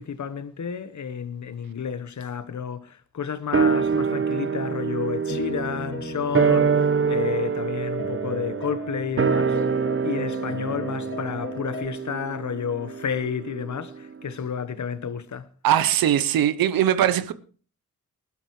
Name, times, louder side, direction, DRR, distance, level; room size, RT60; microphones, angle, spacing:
voice 1, 0.0-15.5, left 7 dB, 55° left, 1.2 m, -31 dB
sound 1, 3.5-14.1 14.4-14.5, right 5 dB, 35° right, 1.1 m, -26 dB
sound 2, 5.3-11.9, left 3 dB, 35° left, 2.8 m, -38 dB
voice 2, 15.6-17.3, right 11 dB, 85° right, 0.9 m, -20 dB
19.5 x 12.0 x 3.2 m
supercardioid pair, 45°, 34 cm